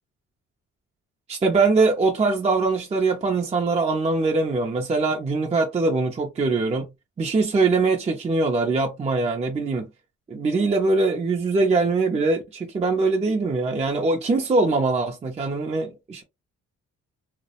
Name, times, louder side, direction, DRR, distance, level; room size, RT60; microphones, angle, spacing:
voice 1, 1.3-6.9 7.2-9.9 10.3-16.2, right 3 dB, 20° right, 0.4 m, -22 dB
2.3 x 2.1 x 2.7 m
cardioid pair, 90°, 30 cm